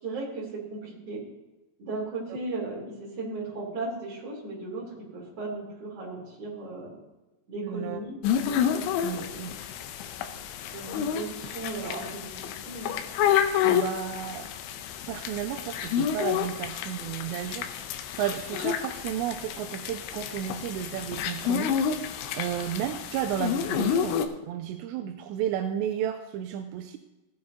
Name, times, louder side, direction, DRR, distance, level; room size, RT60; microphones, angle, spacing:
voice 1, 0.0-1.2 1.8-6.9 7.5-8.2 8.5-8.9 9.1-9.5 10.7-12.9, right 3 dB, 35° right, -5 dB, 3.7 m, -36 dB
voice 2, 7.6-8.0 9.0-9.6 13.6-14.5 15.1-21.7 22.3-27.0, right 10 dB, 85° right, 6 dB, 2.5 m, -33 dB
sound 1, 8.2-24.3, left 9 dB, 80° left, 2.9 m, -29 dB
16.5 x 9.5 x 2.7 m, 1.1 s
omnidirectional pair, 5.6 m